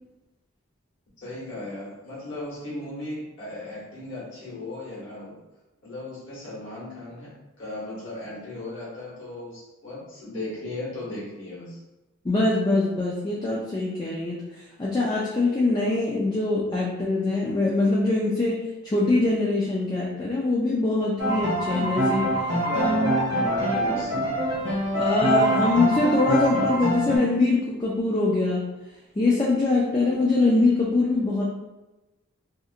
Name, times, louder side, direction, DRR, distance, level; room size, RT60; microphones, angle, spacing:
voice 1, 1.2-5.4 5.8-11.8 22.5-24.5, left 2 dB, 60° left, -7 dB, 1.3 m, -36 dB
voice 2, 12.2-14.4 14.8-18.6 18.8-22.3 24.9-28.6 29.2-31.4, left 2 dB, 20° left, -5 dB, 0.3 m, -23 dB
sound 1, 21.2-27.2, right 1 dB, 50° right, 1.1 m, -24 dB
2.8 x 2.4 x 2.4 m, 1.1 s
head